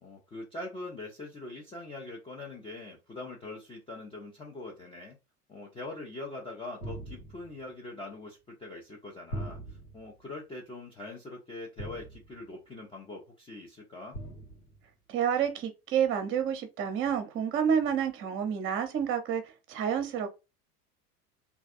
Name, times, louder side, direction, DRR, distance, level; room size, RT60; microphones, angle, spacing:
voice 1, 0.0-5.2 5.5-14.2, left 2 dB, 10° left, 0.5 m, -43 dB
sound 1, 6.8-7.6 9.3-10.1 11.8-12.5 14.1-14.8, right 1 dB, 85° left, 1.1 m, -41 dB
voice 2, 15.1-20.3, right 8 dB, 25° right, 0.7 m, -29 dB
3.3 x 2.4 x 2.4 m
figure-of-eight pair, 75°, 46 cm